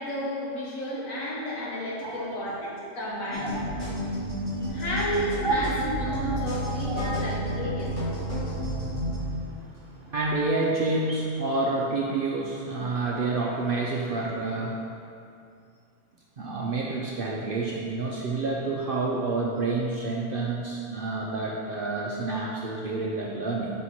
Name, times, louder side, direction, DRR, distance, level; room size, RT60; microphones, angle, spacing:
voice 1, 0.0-3.4 4.7-8.1, equal, 80° left, -6 dB, 1.7 m, -32 dB
voice 2, 2.0-2.4 3.1-3.2 3.5-3.7 4.0-4.8 5.4-5.5 6.6-7.3 8.7-14.8 16.4-23.7, right 3 dB, 60° right, -3 dB, 0.6 m, -29 dB
sound 1, 3.3-9.2, equal, 60° left, 1.8 m, -31 dB
5.6 x 4.5 x 4.2 m, 2.4 s
omnidirectional pair, 1.4 m